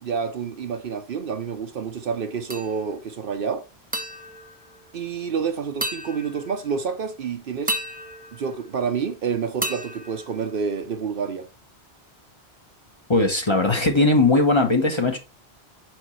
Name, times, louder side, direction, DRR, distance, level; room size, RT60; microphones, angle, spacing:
voice 1, 0.0-3.6 4.9-7.8 8.3-11.5, right 6 dB, 60° right, 0.9 m, -28 dB
sound 1, 2.5-3.1 3.9-5.4 5.8-6.8 7.7-9.2 9.6-11.0, right 1 dB, 10° right, 0.6 m, -34 dB
voice 2, 13.1-15.2, left 2 dB, 30° left, 1.0 m, -19 dB
6.2 x 5.2 x 3.1 m
omnidirectional pair, 1.1 m